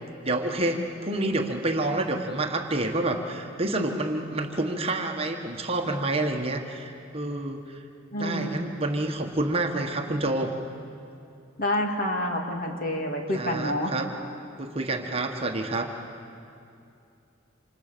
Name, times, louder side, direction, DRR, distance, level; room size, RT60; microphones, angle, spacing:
voice 1, 0.2-7.8 8.2-10.5 13.3-14.1 14.6-15.9, right 2 dB, 30° right, 3 dB, 1.5 m, -28 dB
voice 2, 8.1-8.6 11.6-13.9, left 1 dB, 45° left, 2 dB, 2.8 m, -28 dB
28.0 x 26.5 x 6.9 m, 2.5 s
head